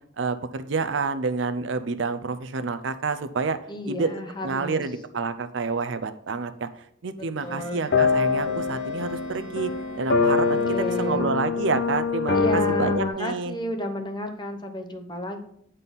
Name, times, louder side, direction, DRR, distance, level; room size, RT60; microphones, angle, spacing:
voice 1, 0.2-3.6 3.9-4.1 4.4-6.7 7.0-9.7 10.0-13.6, right 4 dB, 70° right, 11 dB, 0.5 m, -28 dB
voice 2, 3.7-4.8 7.2-7.8 8.5-8.6 10.5-11.4 12.3-15.4, left 1 dB, 25° left, 5 dB, 0.8 m, -32 dB
Bowed string instrument, 7.4-11.8, left 1 dB, 80° left, 1.6 m, -45 dB
sound 1, 7.6-7.7 7.9-13.1, left 4 dB, 60° left, 0.6 m, -24 dB
8.9 x 4.1 x 5.4 m, 0.69 s
head